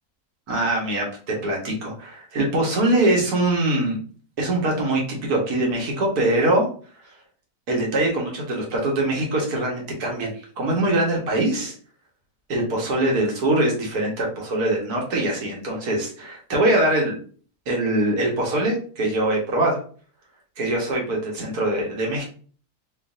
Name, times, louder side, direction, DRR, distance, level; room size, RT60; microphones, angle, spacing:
voice 1, 0.5-4.0 4.4-6.7 7.7-11.7 12.5-17.2 17.7-19.8 20.6-22.2, right 1 dB, 75° right, -1 dB, 1.7 m, -23 dB
4.5 x 2.6 x 2.6 m, 0.43 s
omnidirectional pair, 1.7 m